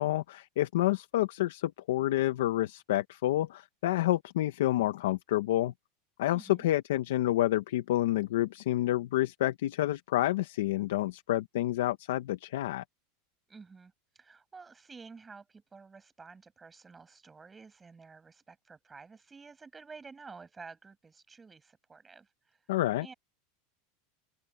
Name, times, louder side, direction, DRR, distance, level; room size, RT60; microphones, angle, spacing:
voice 1, 0.0-5.7 6.2-12.8 22.7-23.1, left 14 dB, 85° left, 1.1 m, -29 dB
voice 2, 6.3-6.6 13.5-22.6 23.0-23.1, right 4 dB, 15° right, 6.7 m, -51 dB
open air
supercardioid pair, 155°, 0 cm